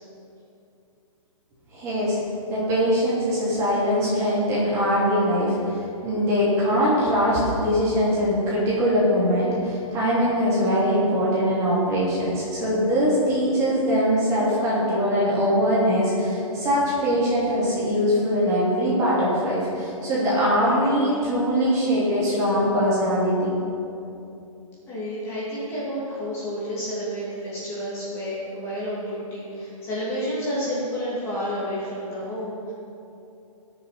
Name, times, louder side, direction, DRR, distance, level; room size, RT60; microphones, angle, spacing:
voice 1, 1.7-2.2 2.5-23.6, equal, 15° right, -8 dB, 2.9 m, -22 dB
voice 2, 24.9-32.7, equal, 15° left, -9 dB, 2.6 m, -30 dB
18.0 x 6.9 x 4.3 m, 2.7 s
hypercardioid pair, 165°, 18 cm